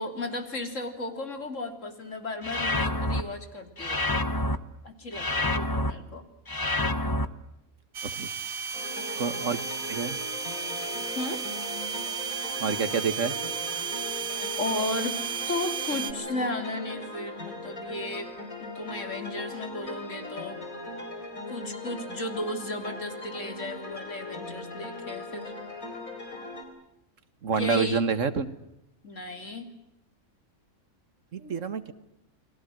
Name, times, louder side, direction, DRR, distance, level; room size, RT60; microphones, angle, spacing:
voice 1, 0.0-4.1 4.8-6.2 11.2-11.4 14.6-15.2 15.5-18.3 18.6-20.6 21.5-25.5 27.5-28.0 29.0-29.7, left 2 dB, 65° left, 7 dB, 3.7 m, -34 dB
sound 1, 2.4-3.2 3.8-4.6 5.1-5.9 6.5-7.3, left 1 dB, 15° left, 1.0 m, -27 dB
sound 2, 7.9-16.1, right 6 dB, 85° right, 1.8 m, -34 dB
sound 3, 8.7-26.6, left 2 dB, 90° left, 4.8 m, -39 dB
voice 2, 9.2-9.6 9.9-10.2 12.6-13.4 27.4-28.5 31.3-31.9, right 5 dB, 65° right, 12 dB, 1.9 m, -28 dB
29.5 x 22.0 x 7.8 m, 0.85 s
omnidirectional pair, 1.4 m